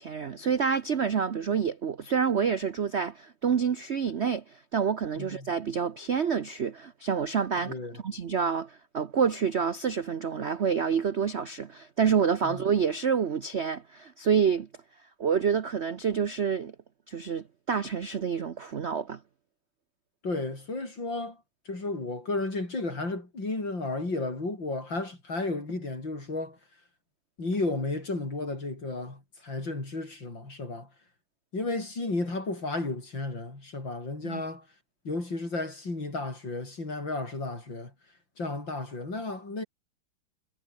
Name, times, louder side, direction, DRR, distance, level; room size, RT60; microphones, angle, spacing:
voice 1, 0.0-14.7 15.2-16.7 17.1-19.2 34.2-34.4, right 6 dB, 55° right, 0.7 m, -28 dB
voice 2, 5.2-5.5 7.7-8.0 12.4-12.6 20.2-21.4 21.7-26.6 27.4-30.9 31.5-34.6 35.0-37.9 38.4-39.6, left 2 dB, 60° left, 7.5 m, -33 dB
omnidirectional pair, 2.4 m